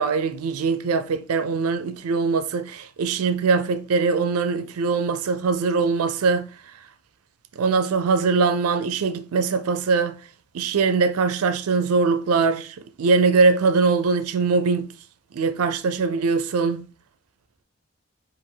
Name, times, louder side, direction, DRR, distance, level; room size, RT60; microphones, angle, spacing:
voice 1, 0.0-6.5 7.6-10.2 10.5-14.9 15.3-16.8, right 4 dB, 85° right, 0.4 m, -22 dB
4.9 x 2.4 x 3.7 m
head